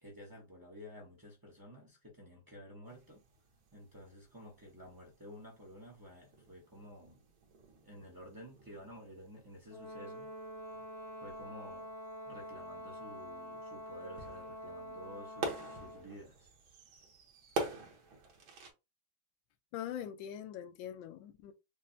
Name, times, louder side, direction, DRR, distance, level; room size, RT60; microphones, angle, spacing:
voice 1, 0.0-3.2 3.7-7.2 7.8-10.3 11.2-11.9 12.3-16.3, equal, 35° right, 0.3 m, -52 dB
sound 1, 2.9-18.7, right 3 dB, 80° right, 1.8 m, -47 dB
Brass instrument, 9.7-16.1, equal, 35° left, 1.2 m, -46 dB
voice 2, 19.7-21.5, left 10 dB, 75° left, 1.3 m, -42 dB
5.4 x 2.1 x 2.6 m
omnidirectional pair, 2.2 m